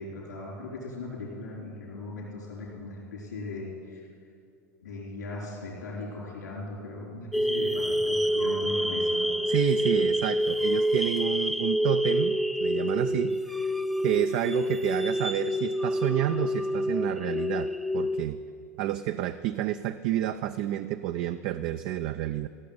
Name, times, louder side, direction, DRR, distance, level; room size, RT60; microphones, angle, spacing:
voice 1, 0.0-4.1 4.8-9.3 9.9-10.0, left 2 dB, 85° left, -4 dB, 4.4 m, -38 dB
sound 1, 7.3-18.2, equal, ahead, 0.7 m, -27 dB
voice 2, 9.5-13.8 14.0-18.4 18.8-22.5, right 13 dB, 55° right, 10 dB, 0.4 m, -30 dB
15.0 x 6.9 x 9.6 m, 2.3 s
hypercardioid pair, 95°, 9 cm